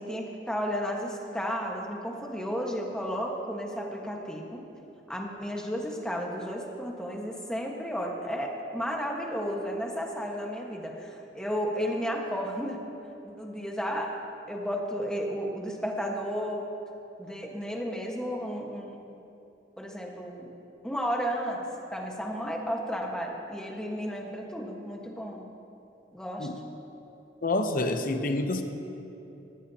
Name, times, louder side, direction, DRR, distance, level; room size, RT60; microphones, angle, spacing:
voice 1, 0.0-4.6 5.1-12.8 13.2-14.2 14.5-16.6 17.2-19.0 19.8-20.5 20.8-21.6 21.9-25.5 26.1-26.5, equal, 5° left, -1 dB, 1.5 m, -33 dB
voice 2, 27.4-28.6, left 2 dB, 50° left, 6 dB, 0.9 m, -28 dB
20.5 x 14.5 x 2.9 m, 2.9 s
head